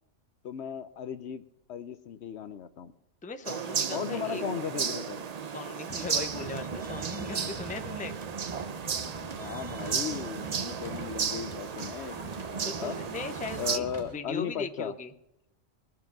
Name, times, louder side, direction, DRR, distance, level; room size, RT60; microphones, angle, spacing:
voice 1, 0.4-1.4 1.7-2.9 3.9-5.3 9.3-13.0 13.6-14.9, left 8 dB, 65° left, 12 dB, 0.9 m, -36 dB
voice 2, 3.2-4.4 5.5-8.1 12.6-15.1, left 3 dB, 10° left, 6 dB, 0.6 m, -39 dB
sound 1, 3.5-13.8, right 6 dB, 45° right, 0.5 m, -34 dB
sound 2, 5.9-14.2, right 2 dB, 25° right, 1.1 m, -43 dB
21.5 x 7.7 x 6.0 m, 0.86 s
omnidirectional pair, 1.3 m